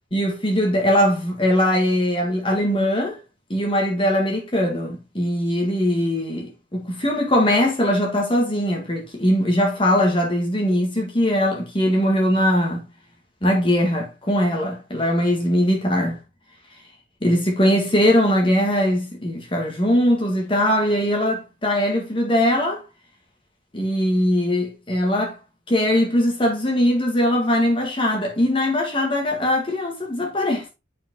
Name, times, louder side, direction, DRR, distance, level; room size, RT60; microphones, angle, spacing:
voice 1, 0.1-3.2 3.5-12.8 13.4-16.2 17.2-22.8 23.7-25.4 25.7-30.7, equal, 25° left, 1.7 m, -21 dB
8.5 x 5.0 x 3.6 m
head